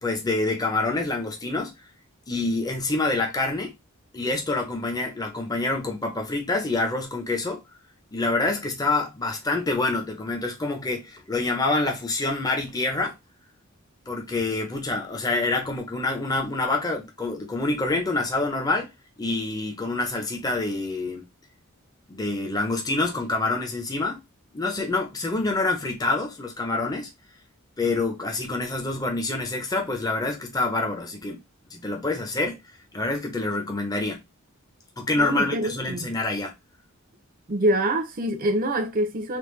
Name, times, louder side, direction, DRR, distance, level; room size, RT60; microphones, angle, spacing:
voice 1, 0.0-1.7 2.3-3.7 4.1-7.6 8.1-13.2 14.1-18.9 19.2-21.2 22.1-24.2 24.5-27.1 27.8-31.4 31.7-32.6 32.9-34.2 35.0-36.5, left 2 dB, 20° left, 0.6 m, -26 dB
voice 2, 35.2-36.1 37.5-39.4, right 1 dB, 40° right, 0.6 m, -25 dB
3.4 x 2.1 x 3.1 m
head